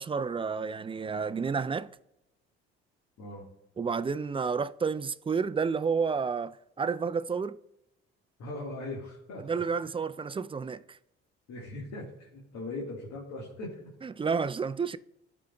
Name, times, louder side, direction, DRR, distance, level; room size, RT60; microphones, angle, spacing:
voice 1, 0.0-1.9 3.8-7.6 9.4-11.0 14.0-15.0, right 5 dB, 20° right, 0.3 m, -30 dB
voice 2, 8.4-9.6 11.5-13.9, left 2 dB, 70° left, 1.8 m, -40 dB
13.5 x 4.9 x 2.3 m
supercardioid pair, 65°, 29 cm